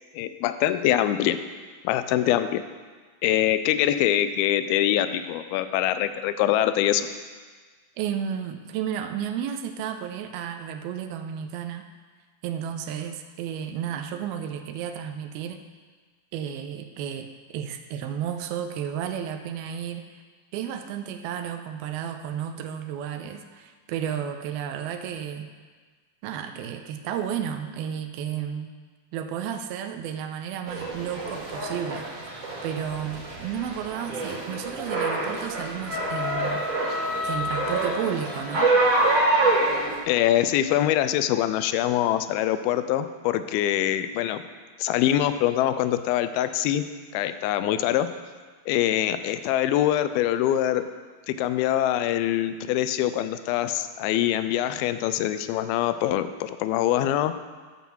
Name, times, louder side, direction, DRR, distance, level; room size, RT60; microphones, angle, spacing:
voice 1, 0.2-1.4 1.8-2.6 3.2-7.1 40.1-44.4 44.8-46.8 47.1-48.1 48.7-50.8 51.3-57.3, left 12 dB, 85° left, 11 dB, 2.4 m, -24 dB
voice 2, 8.0-11.9 12.4-15.6 16.3-20.1 20.5-25.5 26.2-28.7 29.1-32.1 32.6-36.6 37.2-38.7, right 9 dB, 85° right, 6 dB, 2.5 m, -32 dB
sound 1, 30.7-40.0, right 2 dB, 45° right, 2.7 m, -26 dB
12.0 x 5.8 x 7.1 m, 1.5 s
omnidirectional pair, 4.4 m